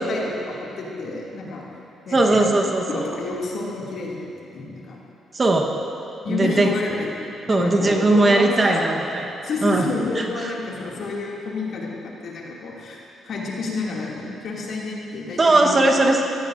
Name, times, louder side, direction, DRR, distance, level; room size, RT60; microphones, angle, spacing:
voice 1, 0.0-1.6 2.1-2.5 2.9-5.0 6.2-8.8 9.4-13.0 13.2-15.9, left 3 dB, 65° left, -4 dB, 2.4 m, -30 dB
voice 2, 2.1-3.0 5.3-5.7 6.3-6.7 7.5-9.3 9.6-10.5 15.4-16.2, right 2 dB, 30° right, 1 dB, 1.1 m, -19 dB
15.0 x 14.5 x 2.6 m, 2.7 s
cardioid pair, 90°, 0 cm